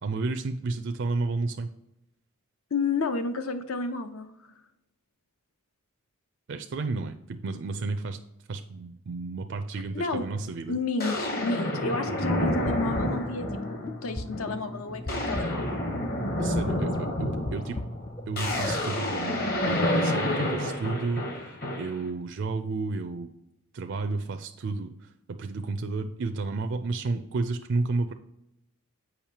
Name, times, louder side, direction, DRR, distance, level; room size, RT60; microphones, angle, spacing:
voice 1, 0.0-1.7 6.5-8.2 8.5-10.8 16.4-17.8 18.3-23.3 23.7-28.1, right 3 dB, 55° right, 6 dB, 0.4 m, -32 dB
voice 2, 2.7-4.3 9.9-10.2 10.7-15.8, left 3 dB, 70° left, 9 dB, 0.7 m, -31 dB
sound 1, 10.1-10.3 11.0-13.9 14.3-14.6 14.9-22.0, left 1 dB, 45° left, 1.1 m, -29 dB
sound 2, 12.3-18.8, left 1 dB, 20° left, 0.3 m, -37 dB
7.1 x 5.2 x 2.9 m, 0.85 s
head